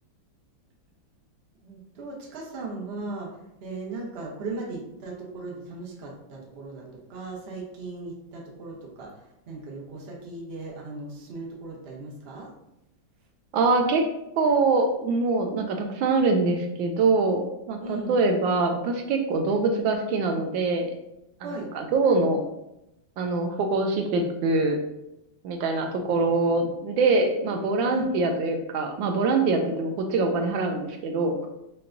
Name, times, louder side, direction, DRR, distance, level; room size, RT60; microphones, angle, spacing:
voice 1, 1.6-12.5 17.8-18.2 21.4-21.7 27.9-28.1, right 3 dB, 50° right, -2 dB, 0.7 m, -37 dB
voice 2, 13.5-14.0 14.4-20.9 21.4-22.4 23.2-24.8 25.4-31.3, right 3 dB, 80° right, 3 dB, 1.3 m, -24 dB
5.7 x 2.2 x 2.5 m, 0.85 s
omnidirectional pair, 2.1 m